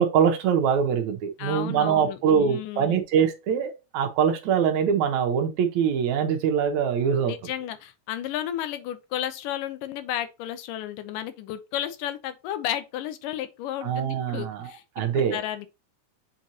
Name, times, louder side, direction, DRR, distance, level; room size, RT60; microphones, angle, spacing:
voice 1, 0.0-7.3 13.8-14.7 15.0-15.4, right 7 dB, 65° right, 2.1 m, -23 dB
voice 2, 1.4-3.0 7.3-15.7, left 12 dB, 75° left, 2.2 m, -33 dB
7.6 x 4.4 x 2.8 m
omnidirectional pair, 4.2 m